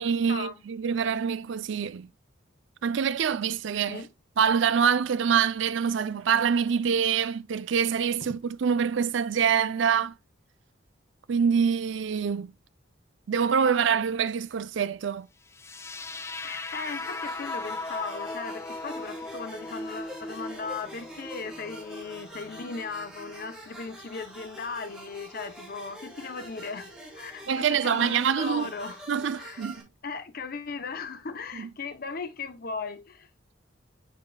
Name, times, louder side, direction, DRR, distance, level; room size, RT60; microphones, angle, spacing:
voice 1, 0.0-2.1 2.8-4.0 4.4-10.1 11.3-12.5 13.3-15.3 27.5-28.7 29.1-29.8 31.5-31.7, right 7 dB, 65° right, 0.4 m, -25 dB
sound 1, 15.5-23.5, left 2 dB, 15° left, 0.4 m, -38 dB
voice 2, 16.4-29.0 29.4-29.7 30.0-33.3, left 4 dB, 50° left, 0.7 m, -37 dB
sound 2, 16.8-29.8, right 1 dB, 5° right, 2.2 m, -46 dB
9.5 x 5.1 x 2.2 m
head